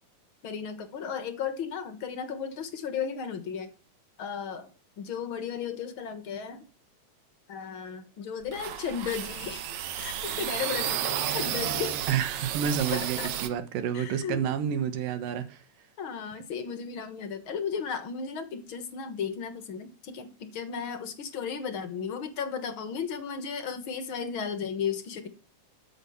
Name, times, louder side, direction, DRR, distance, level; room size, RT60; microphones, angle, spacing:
voice 1, 0.4-3.7 4.2-4.7 5.0-6.6 7.5-9.7 10.0-12.0 12.6-13.3 13.9-14.4 16.0-25.3, left 7 dB, 55° left, 1.5 m, -35 dB
sound 1, 8.4-13.5, right 10 dB, 70° right, 2.2 m, -32 dB
voice 2, 12.1-15.6, right 8 dB, 85° right, 2.9 m, -29 dB
13.0 x 6.5 x 7.0 m
omnidirectional pair, 3.8 m